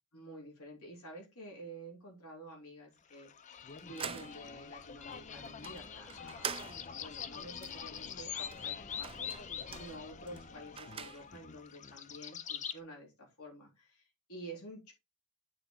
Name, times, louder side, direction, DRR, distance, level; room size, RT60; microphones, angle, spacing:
voice 1, 0.1-3.3 3.8-14.9, right 1 dB, 75° left, -1 dB, 3.3 m, -50 dB
sound 1, 3.1-12.8, left 7 dB, 35° left, 0.5 m, -44 dB
sound 2, 3.6-11.6, right 7 dB, 25° right, 0.5 m, -47 dB
8.8 x 4.5 x 3.7 m, 0.25 s
head